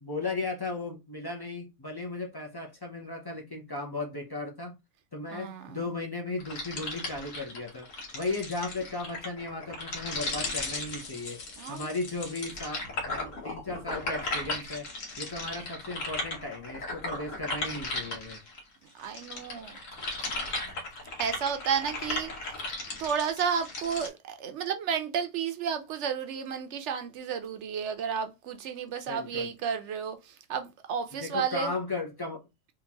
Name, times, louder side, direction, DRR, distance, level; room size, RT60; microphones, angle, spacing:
voice 1, 0.0-4.8 5.1-7.9 8.1-11.4 11.7-14.9 15.2-18.4 29.1-29.5 31.2-32.4, left 3 dB, 35° left, 0.4 m, -36 dB
voice 2, 5.3-5.8 11.6-11.9 18.9-19.8 20.2-20.3 21.2-22.6 23.0-31.7, right 7 dB, 70° right, 0.8 m, -32 dB
sound 1, 6.4-18.6 19.0-24.1, left 2 dB, 80° left, 1.5 m, -36 dB
3.8 x 2.5 x 2.8 m
omnidirectional pair, 1.4 m